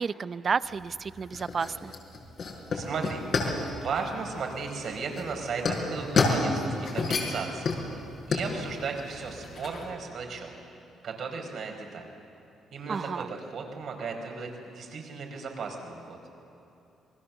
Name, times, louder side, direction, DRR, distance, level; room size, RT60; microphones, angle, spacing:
voice 1, 0.0-1.9 12.9-13.3, right 5 dB, 45° right, 15 dB, 0.6 m, -31 dB
sound 1, 0.6-9.9, left 3 dB, 55° left, 5.4 m, -30 dB
voice 2, 2.7-3.2 3.7-7.7 8.3-10.6 11.0-12.1 12.7-16.2, right 5 dB, 65° right, 2 dB, 4.8 m, -35 dB
28.5 x 20.5 x 7.2 m, 2.9 s
cardioid pair, 90°, 0 cm